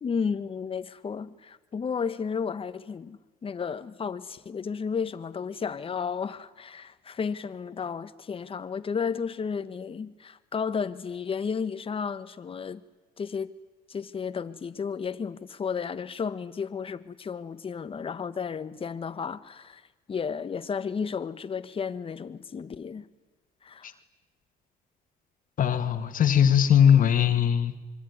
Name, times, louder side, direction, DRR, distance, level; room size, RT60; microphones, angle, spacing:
voice 1, 0.0-12.8 13.2-13.5 13.9-19.8 20.1-23.1 23.6-23.9, left 6 dB, 35° left, 1.5 m, -33 dB
voice 2, 25.6-27.8, left 9 dB, 55° left, 2.3 m, -20 dB
25.5 x 24.0 x 9.8 m
cardioid pair, 110°, 17 cm